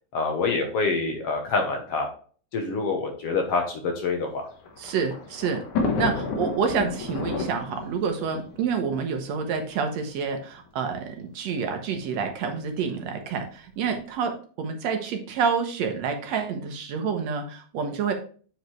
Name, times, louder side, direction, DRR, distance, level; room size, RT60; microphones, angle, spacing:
voice 1, 0.1-2.1 2.5-4.5, left 4 dB, 65° left, 3 dB, 1.8 m, -26 dB
Thunder, 4.3-9.6 10.5-10.6 10.8-10.9 12.0-12.3, left 3 dB, 85° left, 2.7 m, -31 dB
voice 2, 4.8-5.6 6.0-14.3 14.6-18.1, right 6 dB, 70° right, 5 dB, 2.0 m, -28 dB
8.0 x 4.8 x 3.1 m, 0.42 s
omnidirectional pair, 3.4 m